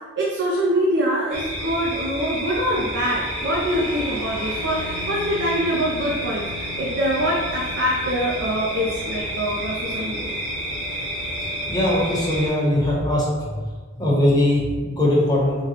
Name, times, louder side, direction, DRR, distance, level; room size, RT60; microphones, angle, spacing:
voice 1, 0.2-10.3, equal, 60° right, -4 dB, 0.6 m, -24 dB
sound 1, 1.3-12.5, right 1 dB, 35° right, 1.0 m, -30 dB
sound 2, 2.3-13.0, left 2 dB, 45° left, 0.5 m, -40 dB
voice 2, 11.7-13.5 14.0-15.6, left 1 dB, 20° left, -6 dB, 1.1 m, -20 dB
3.7 x 2.3 x 4.2 m, 1.5 s
head